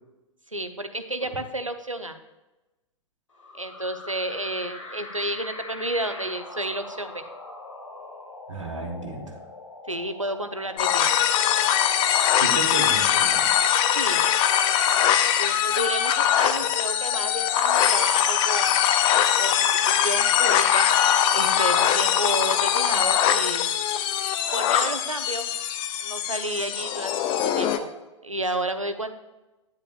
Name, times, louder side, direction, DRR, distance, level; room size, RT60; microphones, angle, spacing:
voice 1, 0.5-2.2 3.5-7.2 9.9-11.1 13.9-14.2 15.4-18.8 19.4-20.9 21.3-23.7 24.5-25.5 26.0-27.9 28.2-29.1, right 1 dB, 90° right, 9 dB, 0.8 m, -31 dB
sound 1, 3.3-19.0, left 2 dB, 75° left, 2.2 m, -44 dB
voice 2, 8.5-9.4 12.3-13.4, right 3 dB, 75° right, -1 dB, 1.6 m, -33 dB
sound 2, 10.8-27.8, left 9 dB, 30° left, 0.7 m, -22 dB
10.5 x 9.7 x 2.5 m, 1.0 s
figure-of-eight pair, 100°, 16 cm